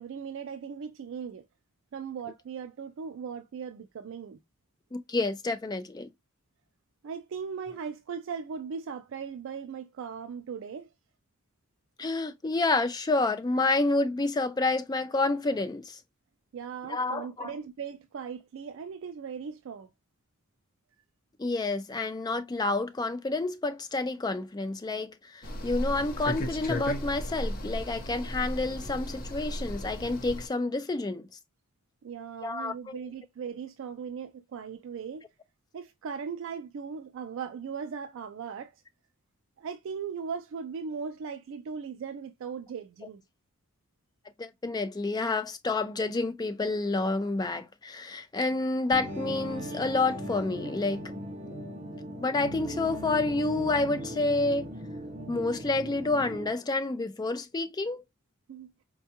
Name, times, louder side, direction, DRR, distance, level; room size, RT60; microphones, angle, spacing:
voice 1, 0.0-1.5 1.9-4.4 7.0-10.9 16.5-19.9 32.0-35.3 35.7-38.7 39.6-43.2 58.5-58.7, right 6 dB, 60° right, 0.3 m, -38 dB
voice 2, 4.9-6.1 12.0-16.0 16.9-17.5 21.4-31.3 32.4-33.0 44.4-51.1 52.1-54.7 55.3-58.0, left 3 dB, 20° left, 0.4 m, -29 dB
sound 1, 25.4-30.5, equal, 45° left, 0.7 m, -35 dB
sound 2, 48.9-56.5, right 1 dB, 35° right, 0.7 m, -38 dB
4.4 x 2.3 x 2.7 m
head